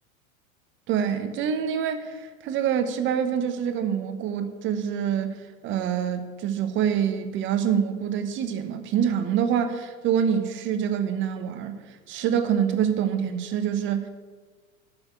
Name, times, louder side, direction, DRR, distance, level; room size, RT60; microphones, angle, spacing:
voice 1, 0.9-5.4 5.6-11.8 12.1-14.1, right 8 dB, 30° right, 1.0 m, -26 dB
8.1 x 7.1 x 8.2 m
figure-of-eight pair, 95°, 42 cm